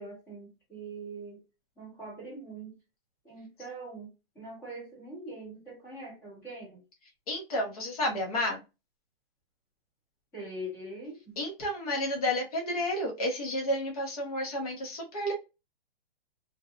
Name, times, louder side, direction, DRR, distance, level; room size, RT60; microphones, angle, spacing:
voice 1, 0.0-1.4 1.8-2.8 3.2-6.8 10.3-11.4, right 2 dB, 10° left, -6 dB, 0.9 m, -43 dB
voice 2, 7.3-8.6 11.4-15.3, left 1 dB, 40° left, 0 dB, 1.0 m, -31 dB
2.7 x 2.2 x 2.4 m, 0.27 s
hypercardioid pair, 175°, 30 cm